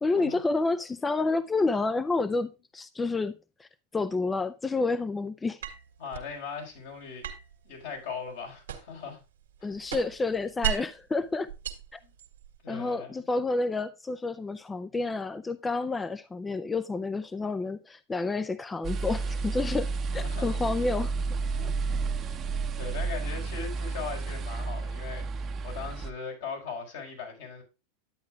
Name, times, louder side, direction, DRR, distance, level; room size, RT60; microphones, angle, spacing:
voice 1, 0.0-5.6 9.6-11.5 11.9-12.0 12.7-21.2, left 3 dB, 15° left, 0.4 m, -29 dB
sound 1, 5.6-6.3 7.2-9.1 9.4-11.0 11.5-12.6, right 10 dB, 90° right, 1.7 m, -36 dB
voice 2, 6.0-7.3 7.6-9.2 9.6-9.7 12.0-12.1 12.6-13.2 20.1-20.6 21.5-21.8 22.1-22.4 22.7-27.6, left 5 dB, 75° left, 4.9 m, -39 dB
sound 2, 18.8-26.1, right 4 dB, 30° right, 0.8 m, -31 dB
11.0 x 8.3 x 2.3 m
hypercardioid pair, 105°, 0 cm